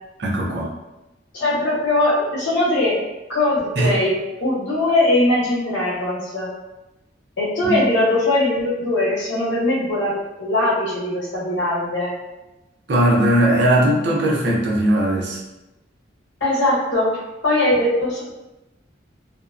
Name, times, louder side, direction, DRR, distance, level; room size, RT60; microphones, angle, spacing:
voice 1, 0.2-0.7 3.8-3.9 7.6-7.8 12.9-15.4, right 1 dB, 60° right, -3 dB, 0.5 m, -18 dB
voice 2, 1.3-3.0 3.3-4.1 4.4-6.5 7.4-10.1 10.4-12.1 16.4-17.2 17.4-18.2, left 1 dB, 70° left, -7 dB, 1.0 m, -20 dB
2.6 x 2.0 x 2.4 m, 0.99 s
head